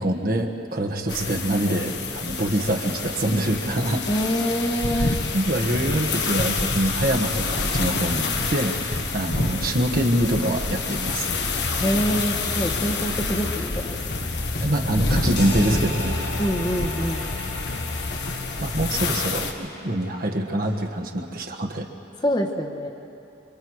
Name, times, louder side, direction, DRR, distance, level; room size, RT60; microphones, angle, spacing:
voice 1, 0.0-4.0 4.9-11.3 14.6-16.2 18.6-21.9, right 1 dB, 50° right, 2 dB, 1.5 m, -25 dB
sound 1, 1.1-19.5, left 3 dB, 65° left, 1.6 m, -28 dB
voice 2, 4.1-5.1 11.8-13.9 16.4-17.3 22.2-22.9, equal, 25° left, 3 dB, 1.3 m, -25 dB
sound 2, 11.2-18.2, left 2 dB, 50° left, 0.9 m, -34 dB
sound 3, 15.4-20.9, left 1 dB, 80° left, 6.0 m, -37 dB
27.0 x 24.5 x 4.8 m, 2.8 s
head